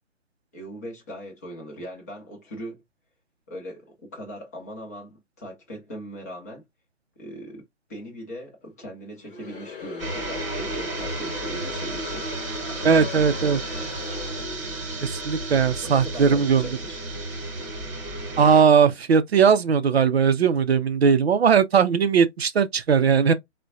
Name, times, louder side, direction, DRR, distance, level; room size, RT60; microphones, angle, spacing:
voice 1, 0.5-2.8 3.5-6.6 7.2-7.6 7.9-12.4 12.7-13.9 15.8-17.0, equal, 15° left, 0.6 m, -39 dB
Crowd, 9.2-14.9, left 4 dB, 45° left, 1.0 m, -40 dB
sound 1, 10.0-18.6, right 2 dB, 25° right, 1.1 m, -32 dB
voice 2, 12.8-13.6 15.0-16.7 18.4-23.3, right 6 dB, 55° right, 0.5 m, -19 dB
3.5 x 2.1 x 2.5 m
figure-of-eight pair, 150°, 37 cm